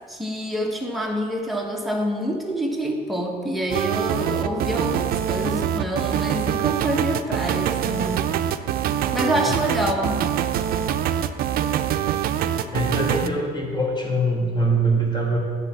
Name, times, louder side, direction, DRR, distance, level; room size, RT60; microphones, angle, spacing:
voice 1, 0.1-8.3 9.1-10.3, equal, ahead, 1 dB, 1.2 m, -26 dB
sound 1, 3.7-13.3, right 10 dB, 60° right, 0.5 m, -24 dB
voice 2, 12.7-15.4, right 1 dB, 25° left, -1 dB, 1.9 m, -23 dB
9.9 x 4.1 x 7.2 m, 2.1 s
cardioid pair, 110°, 17 cm